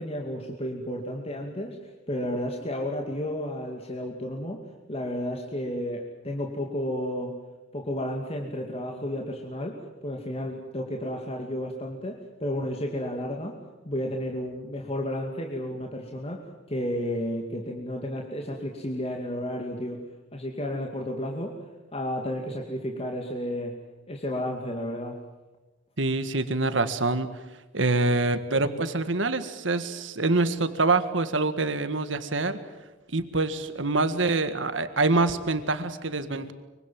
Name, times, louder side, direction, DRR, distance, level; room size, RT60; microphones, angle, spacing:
voice 1, 0.0-1.8 2.1-4.6 4.9-7.3 7.7-13.6 13.8-20.0 20.3-21.6 21.9-23.8 24.1-25.2, left 1 dB, 30° left, 1 dB, 2.4 m, -32 dB
voice 2, 26.0-27.3 27.7-32.6 33.1-36.5, right 3 dB, 70° right, 10 dB, 1.8 m, -25 dB
24.5 x 24.5 x 7.6 m, 1.2 s
head